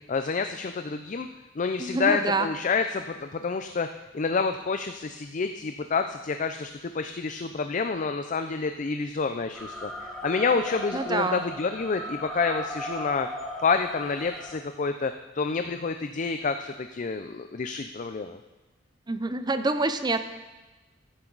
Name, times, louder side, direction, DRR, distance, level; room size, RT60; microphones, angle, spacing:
voice 1, 0.1-1.3 1.6-3.9 4.1-13.3 13.6-18.4, left 4 dB, 40° left, 8 dB, 0.5 m, -28 dB
voice 2, 1.8-2.5 10.9-11.4 19.1-20.2, right 3 dB, 20° right, 10 dB, 0.7 m, -26 dB
sound 1, 9.5-14.6, equal, 5° left, 1.2 m, -37 dB
14.5 x 10.5 x 4.0 m, 1.1 s
head